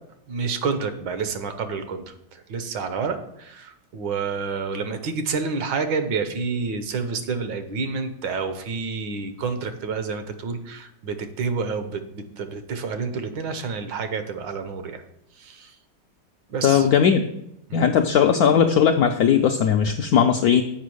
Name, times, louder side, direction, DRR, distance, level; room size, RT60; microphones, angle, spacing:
voice 1, 0.3-2.0 2.3-15.0 15.4-15.7 16.5-16.9 17.7-17.9, right 5 dB, 75° right, 9 dB, 1.5 m, -29 dB
voice 2, 16.6-17.2 17.7-20.6, left 8 dB, 75° left, 5 dB, 0.8 m, -18 dB
7.3 x 5.0 x 6.2 m, 0.81 s
omnidirectional pair, 2.1 m